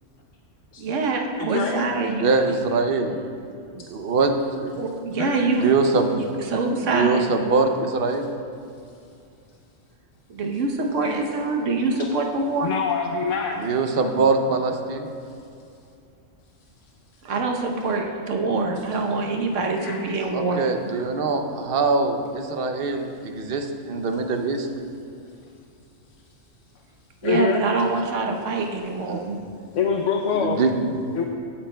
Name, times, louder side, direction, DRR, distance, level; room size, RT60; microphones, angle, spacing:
voice 1, 0.8-2.3 4.8-5.6 6.5-7.2 10.3-12.7 17.2-20.6 27.2-29.2, right 3 dB, 75° right, 2 dB, 1.2 m, -24 dB
voice 2, 1.4-1.9 5.2-5.5 11.0-11.2 12.6-13.6 19.7-20.0 27.2-27.6 29.7-30.6 31.1-31.2, left 6 dB, 75° left, 2 dB, 0.9 m, -25 dB
voice 3, 2.2-3.2 3.7-4.8 5.6-6.4 6.8-8.3 13.6-15.1 20.3-24.7 29.1-29.4 30.3-31.0, right 4 dB, 55° right, 5 dB, 0.8 m, -23 dB
15.0 x 8.5 x 2.2 m, 2.5 s
omnidirectional pair, 1.3 m